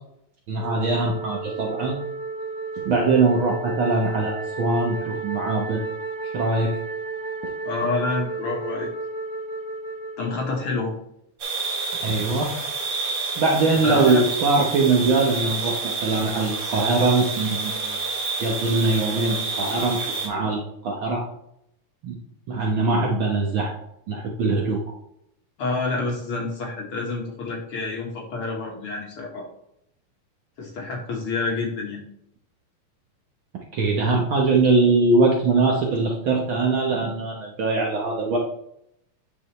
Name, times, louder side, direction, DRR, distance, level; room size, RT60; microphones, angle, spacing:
voice 1, 0.5-1.9 2.8-5.8 6.2-6.7 12.0-12.5 13.4-18.0 18.4-21.2 22.0-22.2 22.5-23.7 24.1-24.8 33.7-38.4, right 3 dB, 80° right, -1 dB, 1.1 m, -22 dB
Wind instrument woodwind instrument, 0.6-10.9, right 3 dB, 20° right, 2.4 m, -33 dB
voice 2, 7.7-8.9 10.2-10.9 13.8-14.2 25.6-29.5 30.6-32.0, left 3 dB, 55° left, -1 dB, 1.8 m, -28 dB
sound 1, 11.4-20.3, right 4 dB, 55° right, 3.0 m, -29 dB
9.4 x 6.3 x 3.2 m, 0.75 s
omnidirectional pair, 3.9 m